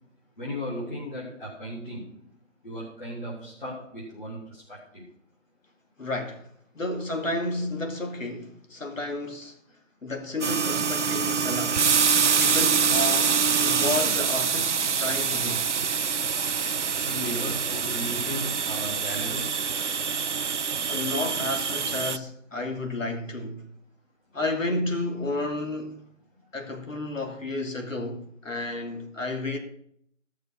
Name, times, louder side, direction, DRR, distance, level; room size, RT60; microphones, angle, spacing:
voice 1, 0.4-2.1 2.6-5.0 17.0-19.6 29.5-29.6, equal, 40° left, 3.3 m, -36 dB
voice 2, 6.0-6.5 6.7-9.6 10.0-11.8 12.2-13.4 13.6-15.7 20.9-23.7 24.3-26.0 26.5-29.6, left 2 dB, 75° left, 2.9 m, -31 dB
sound 1, 10.4-22.2, right 6 dB, 60° right, 0.5 m, -25 dB
15.0 x 6.7 x 6.1 m
figure-of-eight pair, 175°, 40 cm